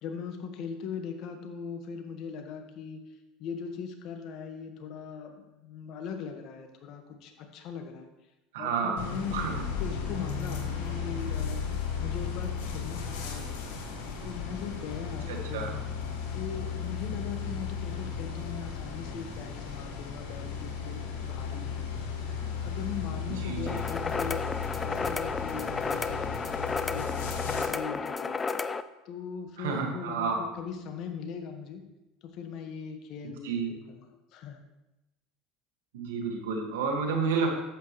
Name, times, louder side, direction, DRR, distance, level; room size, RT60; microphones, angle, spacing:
voice 1, 0.0-8.1 8.6-9.4 9.8-13.8 14.2-15.8 16.3-22.2 22.6-24.4 24.8-28.4 29.0-31.8 32.2-34.6, left 6 dB, 60° left, 5 dB, 1.5 m, -40 dB
voice 2, 8.5-9.0 9.3-9.6 15.3-15.7 23.4-23.8 29.6-30.4 33.4-33.7 35.9-37.5, right 5 dB, 85° right, 2 dB, 1.9 m, -30 dB
sound 1, 9.0-27.6, left 6 dB, 80° left, 1.9 m, -35 dB
sound 2, 23.7-28.8, left 4 dB, 25° left, 0.5 m, -32 dB
12.0 x 8.4 x 3.2 m, 0.97 s
hypercardioid pair, 90°, 0 cm